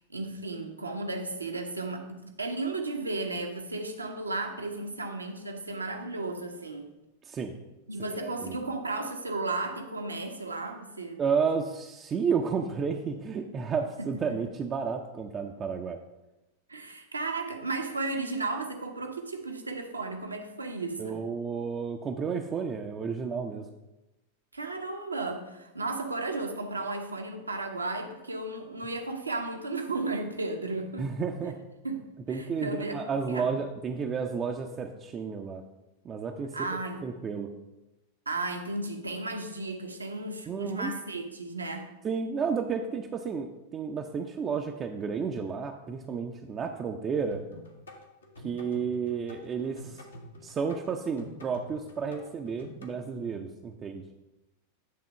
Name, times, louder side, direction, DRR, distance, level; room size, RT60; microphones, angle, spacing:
voice 1, 0.1-6.9 7.9-11.2 14.0-14.4 16.7-21.2 24.5-31.1 31.4-31.5 31.8-33.5 36.5-37.0 38.3-41.9 53.4-53.5, right 2 dB, 80° right, 4 dB, 0.9 m, -34 dB
voice 2, 7.2-7.6 8.0-8.6 11.2-16.0 21.0-23.7 31.0-31.6 32.3-35.6 36.0-36.6 37.0-37.5 40.5-40.9 42.0-47.4 48.4-50.0 50.4-54.1, right 6 dB, 25° right, 2 dB, 0.5 m, -32 dB
sound 1, 47.3-52.9, left 1 dB, 75° left, 1.3 m, -47 dB
9.6 x 3.7 x 5.5 m, 1.0 s
figure-of-eight pair, 90°, 0 cm